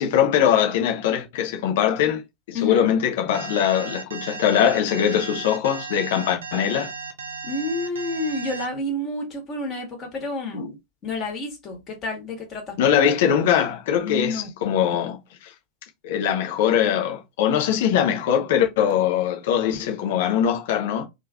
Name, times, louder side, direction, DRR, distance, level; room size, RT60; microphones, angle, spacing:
voice 1, 0.0-2.2 2.5-6.9 10.5-10.7 12.8-15.5 16.0-21.1, left 9 dB, 55° left, 0.8 m, -22 dB
voice 2, 2.5-2.9 7.4-10.7 11.0-12.8 14.0-14.5, left 2 dB, 30° left, 1.4 m, -29 dB
Alarm, 3.3-8.7, right 5 dB, 65° right, 0.6 m, -35 dB
3.2 x 2.5 x 3.5 m
figure-of-eight pair, 90°, 0 cm